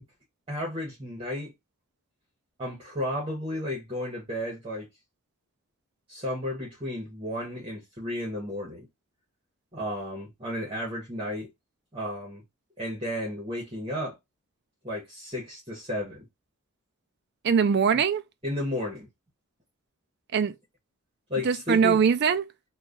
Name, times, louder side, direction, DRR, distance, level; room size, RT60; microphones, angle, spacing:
voice 1, 0.5-1.5 2.6-4.9 6.1-8.9 9.7-11.5 11.9-12.4 12.8-14.2 14.8-16.2 17.9-18.0 18.4-19.1 21.3-22.0, left 1 dB, 25° right, 1.2 m, -33 dB
voice 2, 17.4-18.2 20.3-20.6 21.4-22.5, right 6 dB, 50° right, 0.4 m, -22 dB
3.1 x 2.4 x 3.6 m
head